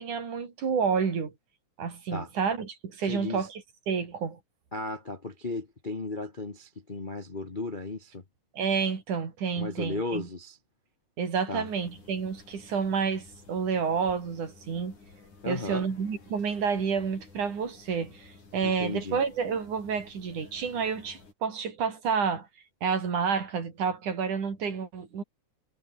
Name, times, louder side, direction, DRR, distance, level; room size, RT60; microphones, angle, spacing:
voice 1, 0.0-1.3 1.8-4.4 8.5-10.3 11.2-15.0 15.5-22.5 22.8-25.2, right 6 dB, 85° right, 5.3 m, -30 dB
voice 2, 3.0-3.5 4.7-8.2 9.6-10.6 11.5-11.7 15.4-15.8 18.6-19.2, left 2 dB, 35° left, 0.7 m, -35 dB
sound 1, 11.6-21.3, left 3 dB, 80° left, 8.7 m, -54 dB
omnidirectional pair, 3.4 m